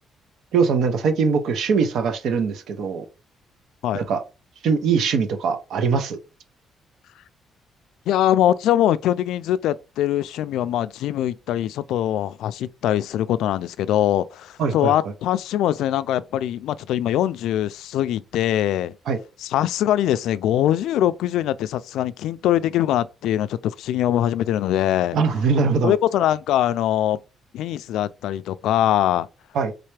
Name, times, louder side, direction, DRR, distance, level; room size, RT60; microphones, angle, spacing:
voice 1, 0.5-3.0 3.9-4.2 4.6-6.2 14.6-14.9 19.1-19.2 25.1-25.9 29.5-29.7, right 5 dB, 65° right, 0.7 m, -21 dB
voice 2, 8.1-18.9 19.4-25.2 25.8-27.2 27.5-29.3, left 12 dB, 90° left, 0.3 m, -22 dB
3.9 x 3.3 x 3.2 m
cardioid pair, 170°, 0 cm